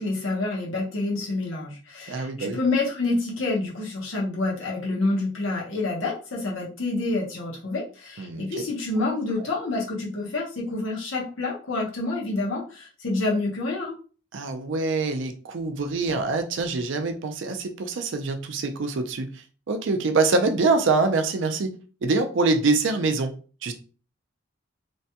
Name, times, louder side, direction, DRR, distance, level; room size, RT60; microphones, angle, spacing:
voice 1, 0.0-13.9, left 2 dB, 80° left, 1.0 m, -28 dB
voice 2, 2.1-2.6 8.2-8.6 14.3-19.3 19.7-21.7 22.0-23.3 23.6-23.7, right 3 dB, 70° right, 0.5 m, -24 dB
3.2 x 2.2 x 2.8 m
head